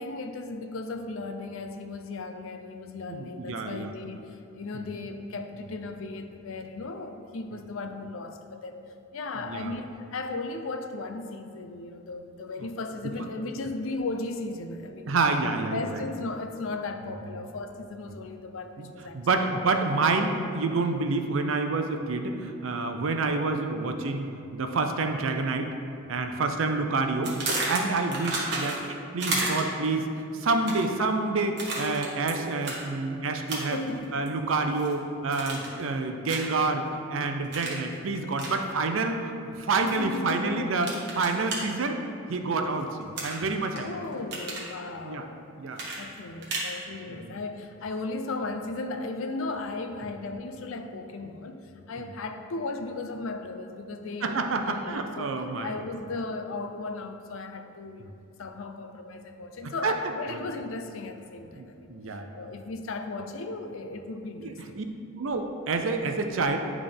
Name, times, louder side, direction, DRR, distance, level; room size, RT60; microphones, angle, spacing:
voice 1, 0.0-8.8 9.1-15.2 15.7-19.2 28.0-28.1 33.7-34.2 39.9-40.8 43.7-45.7 46.0-61.9 62.3-64.7, left 3 dB, 85° left, 6 dB, 0.5 m, -36 dB
voice 2, 3.1-3.9 4.7-4.9 9.4-9.7 15.1-16.0 18.8-18.9 19.1-24.3 24.5-25.7 26.1-27.4 27.6-28.8 29.1-33.8 34.1-40.9 41.2-42.0 42.3-43.8 45.0-45.2 45.6-45.8 47.1-47.3 50.0-50.1 52.0-52.1 54.2-55.7 58.0-58.1 59.6-60.0 60.3-60.4 61.6-62.3 64.4-64.8 65.2-66.6, right 3 dB, 80° right, 5 dB, 0.5 m, -28 dB
sound 1, 27.2-28.9 29.2-29.8 30.5-31.0 31.6-32.3 32.6-32.8 33.5-33.9 34.3-34.9 35.3-35.8 36.3-36.6 37.5-37.8 38.3-38.5 39.9-40.3 40.8-41.6 43.1-43.8 44.1-44.7 45.7-46.7, right 2 dB, 55° right, 1.3 m, -32 dB
10.5 x 3.6 x 3.5 m, 2.6 s
head